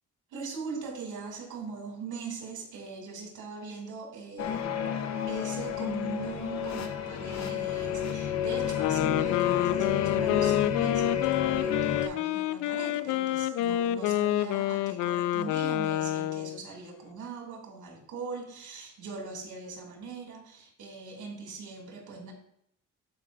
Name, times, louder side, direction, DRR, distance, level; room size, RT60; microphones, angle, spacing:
voice 1, 0.3-5.0 5.3-22.3, right 4 dB, 75° right, 1 dB, 2.7 m, -41 dB
sound 1, 4.4-12.1, left 9 dB, 60° left, 0.9 m, -30 dB
Wind instrument woodwind instrument, 8.7-16.6, left 13 dB, 85° left, 0.5 m, -28 dB
14.0 x 5.4 x 2.6 m, 0.71 s
cardioid pair, 90°, 30 cm